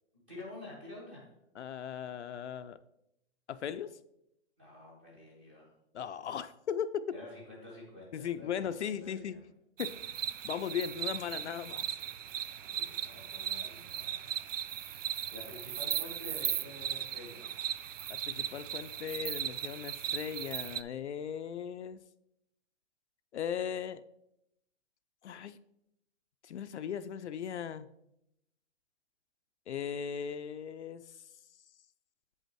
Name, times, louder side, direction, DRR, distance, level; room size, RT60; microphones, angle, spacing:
voice 1, 0.1-1.3 4.6-5.7 7.1-9.4 12.6-14.5 14.9-17.5, left 2 dB, 10° right, -4 dB, 0.7 m, -49 dB
voice 2, 1.6-2.8 3.5-4.0 5.9-7.0 8.1-9.4 9.8-10.0 10.4-11.8 18.1-22.0 23.3-24.0 25.2-25.6 26.4-27.9 29.7-31.0, left 8 dB, 65° left, 12 dB, 0.5 m, -37 dB
sound 1, 9.8-20.8, right 10 dB, 85° right, 0.6 m, -37 dB
8.0 x 5.5 x 4.5 m, 0.82 s
hypercardioid pair, 180°, 37 cm